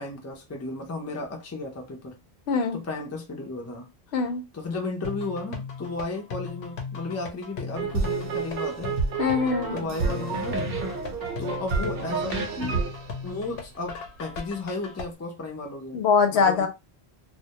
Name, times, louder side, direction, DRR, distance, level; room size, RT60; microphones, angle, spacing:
voice 1, 0.0-2.2 2.7-3.9 4.5-9.0 9.7-10.7 11.4-12.8 13.2-16.0 16.3-16.7, left 2 dB, 25° left, 0.4 m, -34 dB
voice 2, 2.5-2.8 4.1-4.4 9.2-9.8 15.9-16.7, left 5 dB, 90° left, 0.9 m, -22 dB
sound 1, 5.0-15.0, left 5 dB, 60° left, 0.7 m, -38 dB
sound 2, 7.7-14.1, right 4 dB, 65° right, 0.8 m, -29 dB
2.1 x 2.1 x 2.8 m
omnidirectional pair, 1.1 m